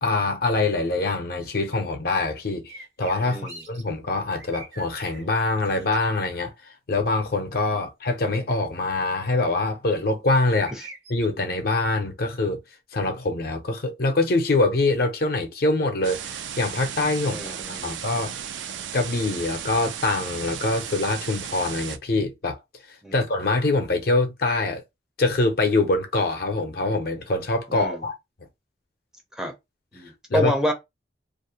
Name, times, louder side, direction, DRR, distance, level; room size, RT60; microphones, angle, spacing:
voice 1, 0.0-2.7 3.0-6.5 6.9-12.6 12.9-18.4 18.9-22.6 23.1-24.8 25.2-28.1 30.3-30.5, left 2 dB, 55° left, 0.5 m, -24 dB
sound 1, 2.7-3.8 4.2-5.2 5.6-6.1 10.4-11.3, right 3 dB, 70° right, 0.8 m, -43 dB
voice 2, 3.2-3.6 10.7-10.8 17.3-18.0 23.0-23.2 27.7-28.0 29.4-29.5 29.9-30.7, left 1 dB, 5° right, 0.4 m, -28 dB
sound 2, 16.0-22.0, right 9 dB, 85° right, 0.4 m, -35 dB
2.4 x 2.0 x 2.7 m
head